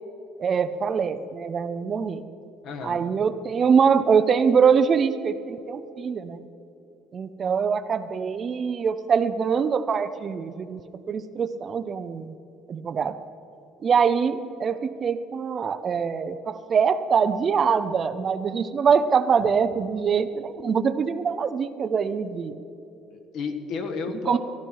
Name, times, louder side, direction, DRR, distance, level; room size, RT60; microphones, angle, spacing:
voice 1, 0.4-2.2 2.8-6.4 7.1-10.8 11.1-12.3 12.7-13.2 13.8-22.5 24.3-24.4, right 6 dB, 30° right, 11 dB, 0.5 m, -23 dB
voice 2, 2.6-3.0 23.1-24.4, left 5 dB, 55° left, 6 dB, 1.4 m, -32 dB
15.5 x 12.5 x 4.6 m, 2.8 s
cardioid pair, 155°, 0 cm